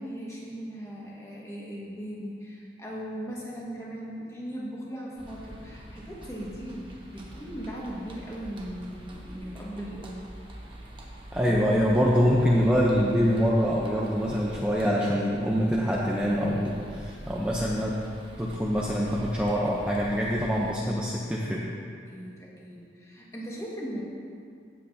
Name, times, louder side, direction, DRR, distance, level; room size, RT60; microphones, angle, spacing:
voice 1, 0.0-10.3 22.1-24.0, equal, 15° left, -5 dB, 1.7 m, -38 dB
sound 1, 5.2-20.8, equal, 25° right, 1.1 m, -44 dB
voice 2, 11.3-18.0 18.4-21.6, equal, 5° right, -5 dB, 0.7 m, -25 dB
16.0 x 7.9 x 2.8 m, 2.3 s
head